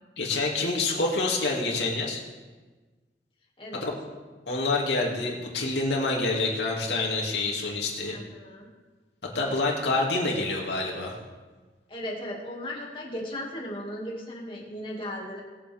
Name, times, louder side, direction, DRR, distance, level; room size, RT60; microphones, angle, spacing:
voice 1, 0.2-2.2 3.7-4.0 4.5-8.2 9.3-11.2, left 2 dB, 75° left, -2 dB, 2.6 m, -27 dB
voice 2, 8.1-8.7 11.9-15.4, left 1 dB, 30° left, -2 dB, 2.4 m, -36 dB
21.0 x 7.6 x 3.7 m, 1.3 s
head